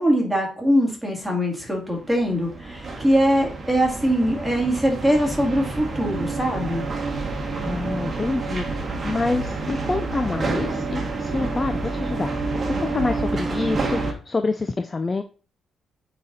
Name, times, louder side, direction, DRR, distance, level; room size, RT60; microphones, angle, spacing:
voice 1, 0.0-6.8, equal, ahead, -1 dB, 2.3 m, -22 dB
sound 1, 1.9-14.1, right 3 dB, 30° right, 1.3 m, -28 dB
voice 2, 7.6-12.3 12.8-15.2, left 3 dB, 20° left, 8 dB, 0.4 m, -27 dB
8.4 x 4.1 x 4.1 m, 0.38 s
cardioid pair, 155°, 0 cm